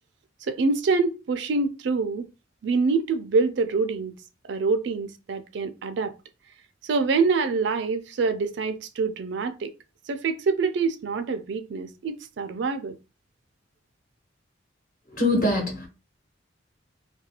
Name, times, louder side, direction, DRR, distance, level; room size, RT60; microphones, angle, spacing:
voice 1, 0.4-2.3 2.6-4.1 4.5-6.1 6.8-9.7 10.1-13.0, right 4 dB, 65° right, 0.4 m, -25 dB
voice 2, 15.1-15.9, left 1 dB, 45° left, 1.1 m, -23 dB
2.3 x 2.2 x 2.8 m
head